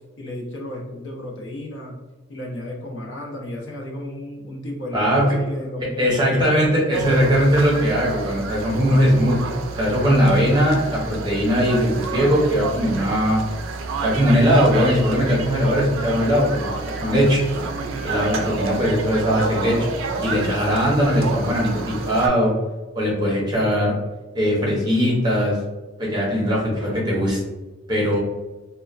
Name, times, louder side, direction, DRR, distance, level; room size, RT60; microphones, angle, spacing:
voice 1, 0.2-2.0 2.3-6.7, left 1 dB, 65° left, -2 dB, 0.7 m, -34 dB
voice 2, 4.9-5.4 6.0-13.4 14.0-16.7 17.0-17.4 18.0-19.9 20.2-22.5 22.9-23.9 24.3-25.6 26.0-27.4 27.9-28.2, equal, 20° right, -3 dB, 0.7 m, -19 dB
sound 1, 6.9-22.3, right 3 dB, 75° right, 0.3 m, -29 dB
3.0 x 2.2 x 2.4 m, 1.2 s
head